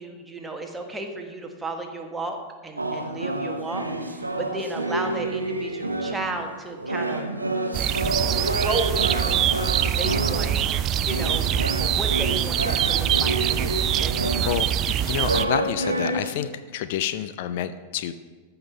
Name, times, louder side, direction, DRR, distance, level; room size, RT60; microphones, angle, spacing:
voice 1, 0.0-7.2 8.3-10.5 11.0-14.8, right 2 dB, 10° right, 3 dB, 1.3 m, -34 dB
sound 1, 2.8-6.5 6.8-16.3, right 2 dB, 80° right, 0.8 m, -29 dB
sound 2, 7.7-15.4, right 10 dB, 35° right, 0.4 m, -24 dB
voice 2, 15.0-18.1, left 11 dB, 50° left, 11 dB, 0.4 m, -28 dB
13.5 x 5.9 x 5.1 m, 1.4 s
figure-of-eight pair, 90°, 0 cm